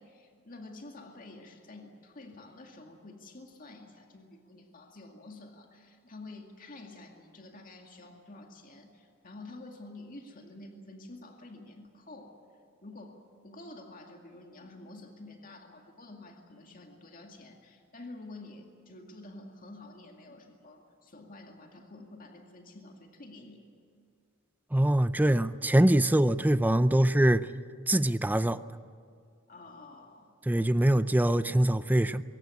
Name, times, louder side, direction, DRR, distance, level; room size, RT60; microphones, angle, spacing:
voice 1, 0.0-12.3 12.8-23.6 29.5-30.3, left 2 dB, 45° left, 2.2 m, -49 dB
voice 2, 24.7-27.5 27.9-28.6 30.5-32.2, right 1 dB, 10° right, 0.5 m, -23 dB
22.5 x 17.5 x 9.4 m
head